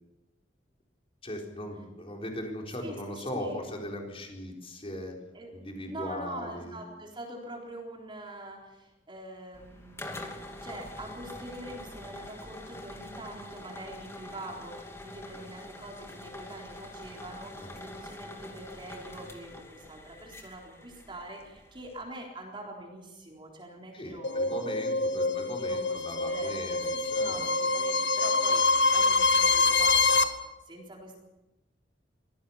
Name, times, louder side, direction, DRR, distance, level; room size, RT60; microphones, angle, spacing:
voice 1, 1.2-5.2 5.5-6.8 17.6-17.8 23.9-27.5, left 1 dB, 30° left, 1 dB, 4.2 m, -39 dB
voice 2, 2.8-3.6 5.3-5.5 5.8-10.3 10.6-24.7 25.3-28.6 28.9-30.3 30.6-31.2, right 1 dB, 30° right, 0 dB, 3.9 m, -44 dB
sound 1, 9.5-22.0, left 1 dB, 15° left, 2.7 m, -45 dB
sound 2, 24.2-30.2, left 3 dB, 85° left, 1.5 m, -25 dB
23.5 x 16.5 x 7.2 m, 0.98 s
head